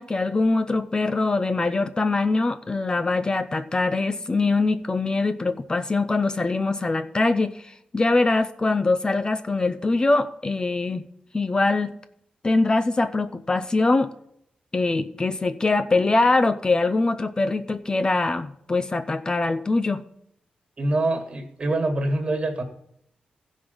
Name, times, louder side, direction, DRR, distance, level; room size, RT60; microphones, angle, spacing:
voice 1, 0.0-11.0 11.3-11.9 12.4-14.1 14.7-20.0, left 3 dB, 25° left, 10 dB, 0.5 m, -23 dB
voice 2, 20.8-22.6, right 2 dB, 40° right, 6 dB, 1.9 m, -25 dB
15.0 x 5.2 x 5.3 m, 0.74 s
cardioid pair, 100°, 3 cm